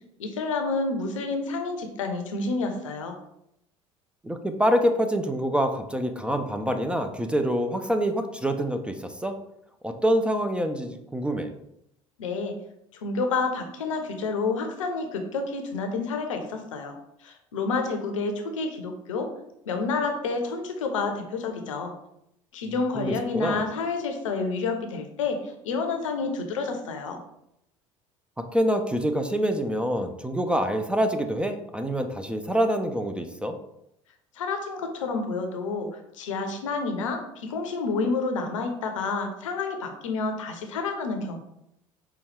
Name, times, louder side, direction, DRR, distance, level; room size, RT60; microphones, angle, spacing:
voice 1, 0.2-3.1 12.2-12.5 13.0-16.9 17.2-19.3 19.7-21.9 22.5-25.4 25.6-27.2 34.4-41.4, left 4 dB, 75° left, 5 dB, 0.6 m, -29 dB
voice 2, 4.2-9.4 9.8-11.5 23.0-23.6 28.5-33.5, equal, 5° right, 6 dB, 0.4 m, -26 dB
5.0 x 2.3 x 3.3 m, 0.79 s
figure-of-eight pair, 65°, 17 cm